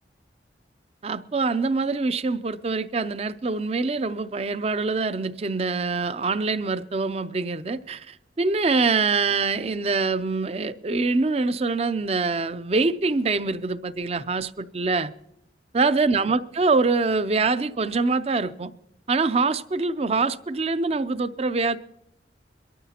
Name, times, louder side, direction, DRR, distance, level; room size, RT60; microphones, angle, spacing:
voice 1, 1.0-15.1 15.7-18.7 19.1-21.8, right 3 dB, 35° right, 0.4 m, -24 dB
23.0 x 13.0 x 2.9 m
head